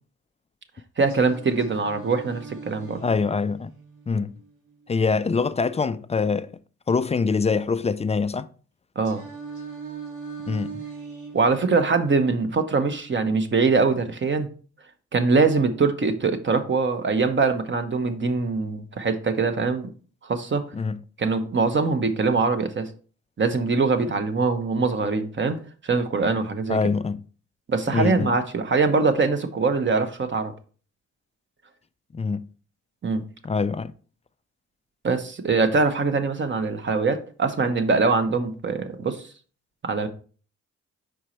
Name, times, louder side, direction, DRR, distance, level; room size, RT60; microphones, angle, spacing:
voice 1, 1.0-3.0 9.0-9.2 11.3-14.5 15.1-19.9 20.2-20.6 21.2-22.9 23.4-26.8 27.7-30.5 33.0-33.2 35.0-39.3 39.8-40.1, right 4 dB, 35° right, 0.9 m, -23 dB
Singing, 1.1-5.1 9.0-13.1, right 5 dB, 70° right, 2.0 m, -41 dB
voice 2, 3.0-3.7 4.1-4.3 4.9-6.5 6.9-8.5 10.5-10.8 20.7-21.0 26.7-27.2 27.9-28.3 32.1-32.4 33.4-33.9, left 4 dB, 20° left, 0.3 m, -24 dB
5.1 x 4.5 x 4.3 m
cardioid pair, 75°, 32 cm